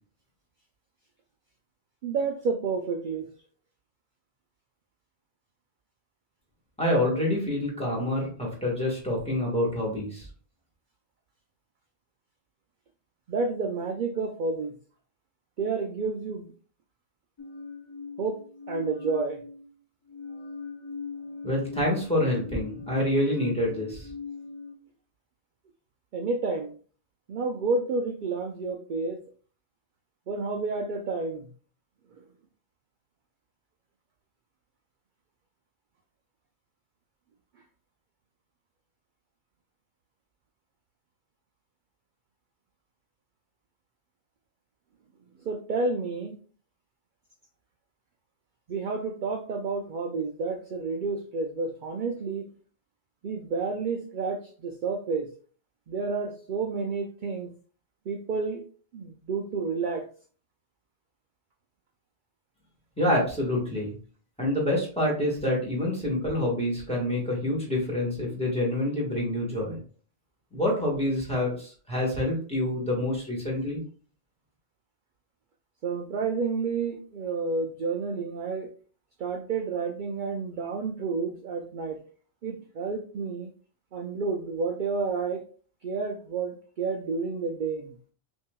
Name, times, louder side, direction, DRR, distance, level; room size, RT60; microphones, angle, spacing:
voice 1, 2.0-3.3 13.3-14.7 15.6-16.5 18.2-18.4 18.7-19.4 26.1-26.8 27.3-29.2 30.3-31.5 32.2-32.3 45.5-46.4 48.7-52.5 53.2-55.3 55.9-57.5 58.1-58.6 58.9-60.0 75.8-78.7 79.2-82.0 82.4-83.5 83.9-85.4 85.8-88.0, right 4 dB, 60° right, 3 dB, 0.6 m, -30 dB
voice 2, 6.8-10.3 21.4-24.1 63.0-63.9 64.4-69.8 70.5-73.8, left 1 dB, 5° left, -4 dB, 1.4 m, -27 dB
sound 1, 17.4-19.7 20.1-24.8, left 4 dB, 40° left, 0.4 m, -40 dB
5.5 x 2.8 x 2.2 m, 0.42 s
omnidirectional pair, 1.1 m